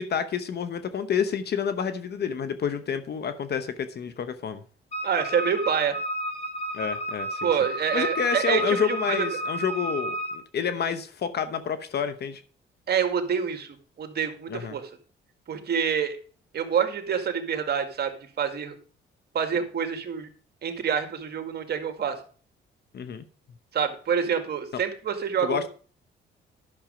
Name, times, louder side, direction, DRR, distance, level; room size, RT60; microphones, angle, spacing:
voice 1, 0.0-4.6 6.7-7.5 7.9-12.4 14.5-14.8 22.9-23.2 24.7-24.8 25.4-25.7, left 7 dB, 55° left, 11 dB, 1.0 m, -29 dB
Wind instrument woodwind instrument, 4.9-10.4, right 1 dB, 30° left, 5.1 m, -32 dB
voice 2, 5.0-6.0 7.4-9.4 12.9-14.9 15.5-16.2 16.5-18.8 19.3-20.3 20.6-22.2 23.7-25.7, right 7 dB, 55° right, 7 dB, 1.9 m, -27 dB
11.0 x 6.4 x 5.1 m, 0.41 s
cardioid pair, 90°, 20 cm